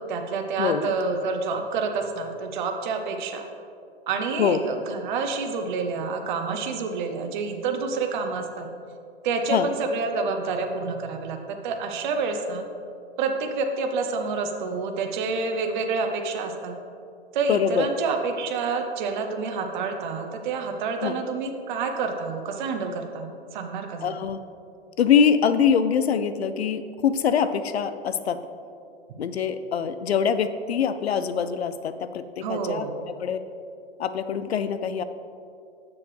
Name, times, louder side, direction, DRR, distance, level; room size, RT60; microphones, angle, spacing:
voice 1, 0.0-3.5 4.1-8.7 9.2-11.4 11.6-12.6 13.2-16.7 17.3-24.2 32.4-33.0, right 4 dB, 50° right, 5 dB, 0.7 m, -28 dB
voice 2, 0.6-0.9 4.4-4.6 9.5-9.7 17.5-17.9 21.0-21.2 24.0-24.4 25.0-28.4 29.2-32.9 33.2-33.4 34.0-35.0, left 7 dB, 80° left, 11 dB, 0.5 m, -24 dB
7.0 x 6.8 x 3.2 m, 2.5 s
hypercardioid pair, 120°, 31 cm